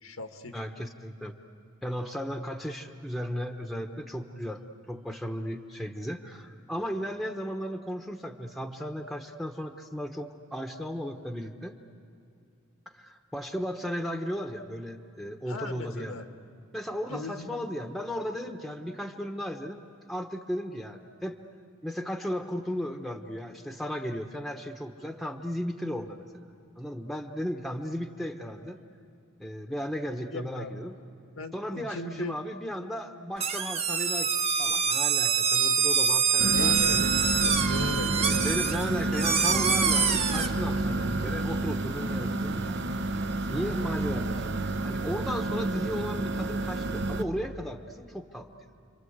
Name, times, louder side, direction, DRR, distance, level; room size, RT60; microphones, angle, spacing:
voice 1, 0.0-0.5 15.5-16.2 17.1-17.5 30.3-30.8 31.4-32.3 36.5-38.5, left 2 dB, 90° left, 6 dB, 1.6 m, -38 dB
voice 2, 0.5-1.3 1.8-4.6 4.9-11.7 12.9-16.2 16.7-21.4 21.8-26.5 26.8-28.8 29.4-30.9 31.5-34.3 34.6-37.1 38.4-43.0 43.5-48.5, equal, ahead, 5 dB, 1.0 m, -35 dB
sound 1, 33.4-40.5, right 6 dB, 30° right, 1.1 m, -25 dB
sound 2, 36.4-47.2, right 2 dB, 60° right, 1.0 m, -30 dB
30.0 x 24.0 x 8.0 m, 2.6 s
head